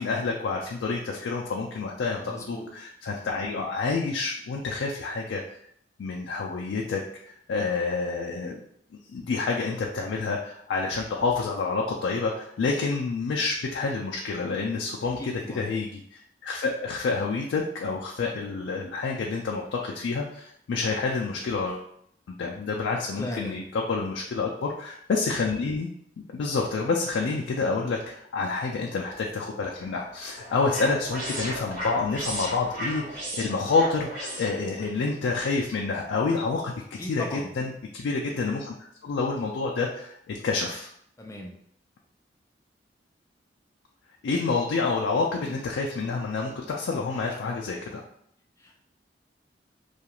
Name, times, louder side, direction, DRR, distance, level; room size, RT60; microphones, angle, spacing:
voice 1, 0.0-5.4 6.0-8.6 9.1-21.9 22.3-25.9 26.3-36.7 37.0-38.7 39.0-40.9 44.2-48.0, left 4 dB, 85° left, -1 dB, 0.3 m, -28 dB
voice 2, 2.2-2.7 15.2-15.7 23.2-23.6 37.0-37.5 41.2-41.5 48.6-48.7, left 1 dB, 15° left, 0 dB, 0.4 m, -37 dB
sound 1, 29.8-35.0, equal, 50° right, 1.0 m, -35 dB
2.4 x 2.3 x 2.9 m, 0.68 s
head